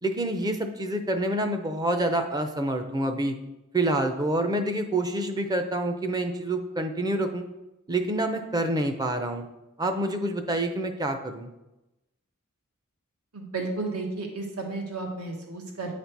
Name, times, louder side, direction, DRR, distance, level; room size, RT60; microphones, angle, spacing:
voice 1, 0.0-3.4 3.7-7.4 7.9-9.5 9.8-11.5, right 1 dB, 15° right, 6 dB, 0.5 m, -27 dB
voice 2, 13.3-15.9, right 3 dB, 75° right, 1 dB, 1.4 m, -33 dB
9.0 x 4.2 x 4.6 m, 0.96 s
head